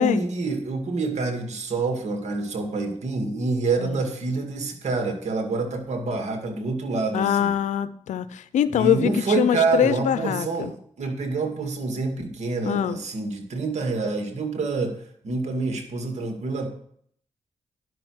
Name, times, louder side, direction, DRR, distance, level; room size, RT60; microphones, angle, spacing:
voice 1, 0.0-7.5 8.7-15.0 15.2-16.7, right 3 dB, 70° right, 4 dB, 2.2 m, -27 dB
voice 2, 7.1-10.7 12.6-13.0, left 9 dB, 85° left, 14 dB, 0.6 m, -23 dB
11.0 x 5.9 x 6.3 m, 0.64 s
cardioid pair, 55°, 12 cm